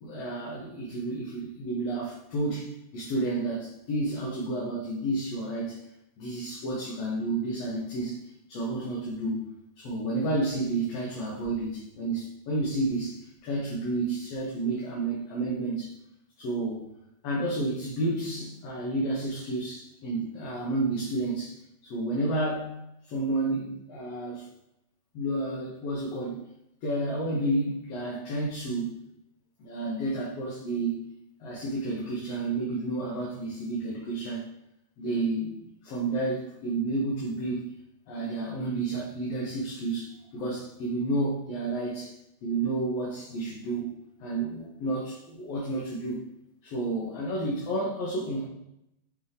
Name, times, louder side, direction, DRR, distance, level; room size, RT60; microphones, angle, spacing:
voice 1, 0.0-5.9 6.2-15.9 16.4-16.8 17.2-21.5 21.8-22.7 23.1-24.5 25.1-26.4 26.8-29.0 29.6-31.1 31.4-34.5 35.0-37.7 38.1-42.1 42.4-43.9 44.2-46.2 46.6-48.5, right 2 dB, 65° left, -5 dB, 2.1 m, -31 dB
6.1 x 4.7 x 3.4 m, 0.81 s
omnidirectional pair, 3.4 m